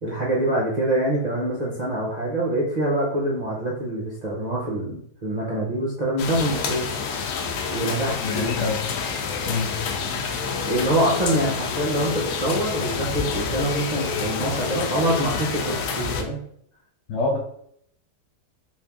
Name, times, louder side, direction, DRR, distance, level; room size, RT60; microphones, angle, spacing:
voice 1, 0.0-6.9 7.7-8.5 10.6-16.4, right 1 dB, 65° right, -5 dB, 0.4 m, -25 dB
sound 1, 6.2-16.2, left 5 dB, 75° left, 1.0 m, -28 dB
voice 2, 8.2-8.8 9.5-9.8 17.1-17.4, left 3 dB, 90° left, 0 dB, 0.6 m, -25 dB
3.2 x 2.6 x 3.4 m, 0.69 s
omnidirectional pair, 1.8 m